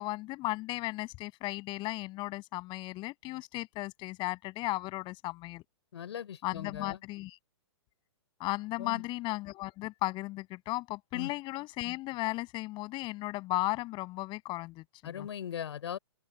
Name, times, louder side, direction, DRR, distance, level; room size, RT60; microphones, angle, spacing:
voice 1, 0.0-5.6 6.4-7.4 8.4-15.3, left 19 dB, 30° left, 6.9 m, -35 dB
voice 2, 5.9-7.0 8.8-9.0 11.1-11.3 15.0-16.0, left 9 dB, 65° left, 4.9 m, -39 dB
open air
hypercardioid pair, 125°, 15 cm